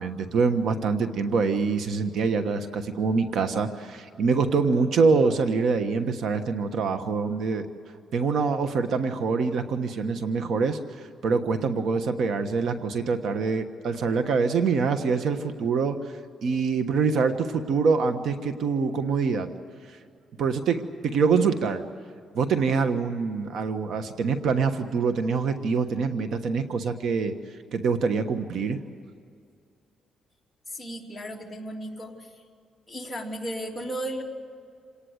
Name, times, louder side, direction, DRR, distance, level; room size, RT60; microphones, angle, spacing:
voice 1, 0.0-7.7 8.1-19.5 19.9-20.0 20.4-21.8 22.3-28.8, right 5 dB, 65° right, 8 dB, 1.3 m, -25 dB
voice 2, 30.7-32.4 32.9-34.2, right 1 dB, 5° left, -3 dB, 3.2 m, -35 dB
28.0 x 18.5 x 8.0 m, 2.3 s
cardioid pair, 145°, 0 cm